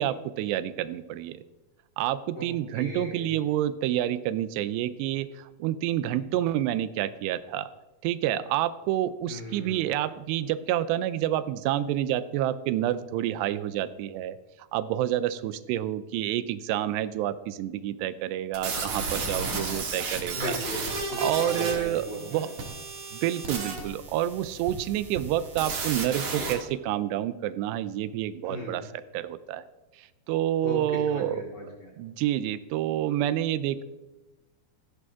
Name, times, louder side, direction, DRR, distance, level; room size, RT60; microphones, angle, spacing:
voice 1, 0.0-1.4 2.0-7.7 8.0-14.4 14.7-20.5 21.2-22.5 23.1-28.9 29.1-29.7 30.0-31.4 32.0-33.8, right 12 dB, 85° right, 14 dB, 2.8 m, -28 dB
voice 2, 2.7-3.4 9.3-9.8 20.3-22.5 28.4-28.8 30.6-31.9, equal, 30° left, -2 dB, 3.0 m, -37 dB
sound 1, 18.5-26.5, right 4 dB, 45° right, 2.6 m, -33 dB
17.0 x 13.5 x 3.6 m, 1.1 s
omnidirectional pair, 4.8 m